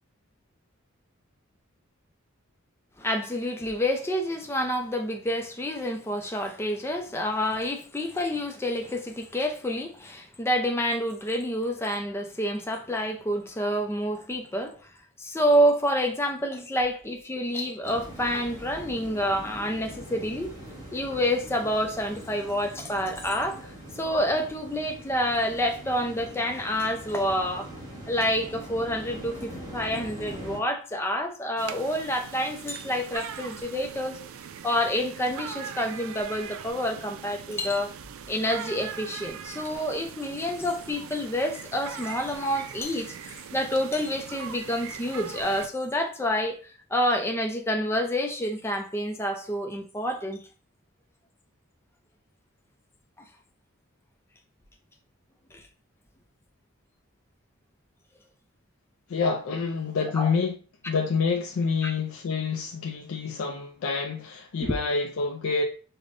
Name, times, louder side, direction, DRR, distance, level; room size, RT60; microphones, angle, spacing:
voice 1, 3.0-14.8 15.2-20.5 20.9-27.7 28.1-34.2 34.6-37.9 38.3-50.4 55.5-55.6 60.2-60.3 61.8-61.9 64.6-64.7, equal, 10° left, 0.4 m, -28 dB
sound 1, 17.8-30.6, right 1 dB, 20° right, 1.3 m, -42 dB
sound 2, 31.6-45.7, right 8 dB, 75° right, 0.3 m, -41 dB
voice 2, 59.1-60.6 60.9-65.6, left 4 dB, 75° left, 0.4 m, -27 dB
5.1 x 2.1 x 2.5 m
head